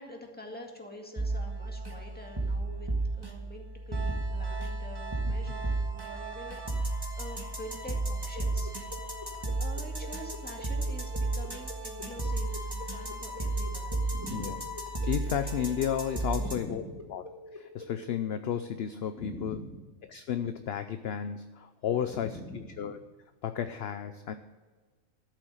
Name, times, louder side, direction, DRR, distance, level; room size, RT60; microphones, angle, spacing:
voice 1, 0.0-2.9 3.2-8.7 9.6-14.5 16.3-17.1 19.2-19.8 22.1-22.9, equal, 5° left, 1 dB, 1.9 m, -45 dB
sound 1, 1.2-16.6, right 2 dB, 15° right, 1.5 m, -33 dB
sound 2, 8.3-18.2, left 1 dB, 30° left, 1.3 m, -46 dB
voice 2, 15.1-16.8 17.1-17.2 17.5-19.6 20.1-22.4 22.8-23.0 23.4-24.3, left 9 dB, 60° left, 9 dB, 0.7 m, -32 dB
13.0 x 7.7 x 6.4 m, 1.4 s
omnidirectional pair, 1.5 m